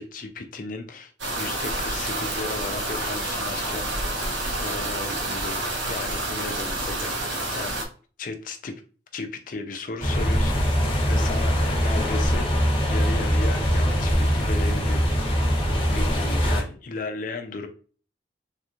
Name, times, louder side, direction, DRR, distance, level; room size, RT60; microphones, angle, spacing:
voice 1, 0.0-3.9 4.6-7.8 8.2-8.7 9.1-12.5 12.9-15.4 15.9-17.7, left 3 dB, 45° left, 0.5 m, -35 dB
sound 1, 1.2-7.8, right 1 dB, 75° right, 1.0 m, -29 dB
sound 2, 10.0-16.6, equal, 30° left, 1.0 m, -22 dB
3.3 x 2.9 x 2.4 m
head